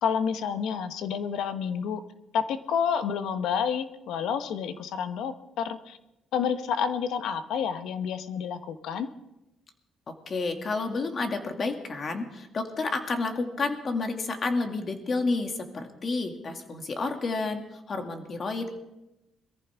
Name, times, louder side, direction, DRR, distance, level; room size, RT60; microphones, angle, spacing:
voice 1, 0.0-2.0 2.3-6.0 6.3-9.1, left 7 dB, 85° left, 10 dB, 1.0 m, -29 dB
voice 2, 10.3-18.7, left 3 dB, 45° left, 4 dB, 2.2 m, -30 dB
22.5 x 14.5 x 3.5 m, 0.92 s
cardioid pair, 90°, 0 cm